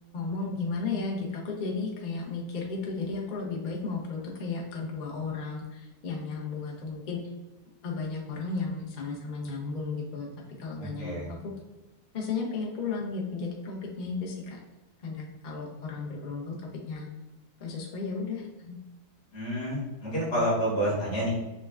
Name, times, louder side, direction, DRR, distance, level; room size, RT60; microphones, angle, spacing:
voice 1, 0.1-7.2 7.8-10.3 10.6-11.5 12.1-14.6 15.0-16.6 16.9-17.1 17.6-18.8, left 4 dB, 50° left, -2 dB, 0.6 m, -34 dB
voice 2, 10.8-11.3 19.3-21.3, equal, 80° left, -7 dB, 2.2 m, -29 dB
6.4 x 2.2 x 2.3 m, 1.1 s
omnidirectional pair, 1.7 m